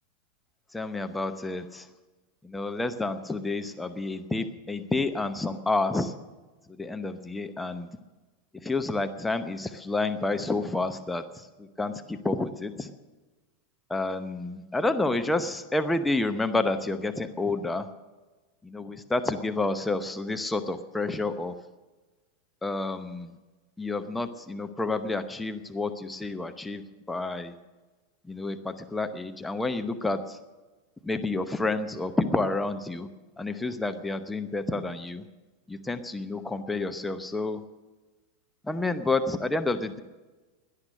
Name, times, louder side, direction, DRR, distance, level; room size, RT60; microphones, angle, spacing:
voice 1, 0.7-1.8 2.5-6.1 6.8-7.9 8.6-11.2 11.8-12.9 13.9-17.8 18.7-21.5 22.6-23.3 23.8-26.8 27.1-27.5 28.3-30.2 31.0-33.1 33.4-35.2 35.7-37.6 38.7-40.0, left 2 dB, 10° left, 8 dB, 0.8 m, -29 dB
16.5 x 11.5 x 6.5 m, 1.2 s
figure-of-eight pair, 90°, 0 cm